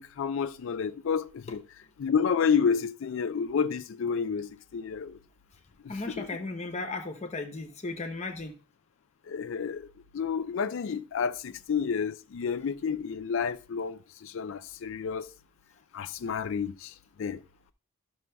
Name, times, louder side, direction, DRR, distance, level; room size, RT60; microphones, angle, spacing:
voice 1, 0.0-1.6 2.0-5.2 5.8-6.3 9.3-9.9 10.1-15.3 15.9-17.4, left 6 dB, 60° left, 0.3 m, -30 dB
voice 2, 5.9-8.5, left 3 dB, 30° left, 0.7 m, -35 dB
12.5 x 6.1 x 2.2 m
head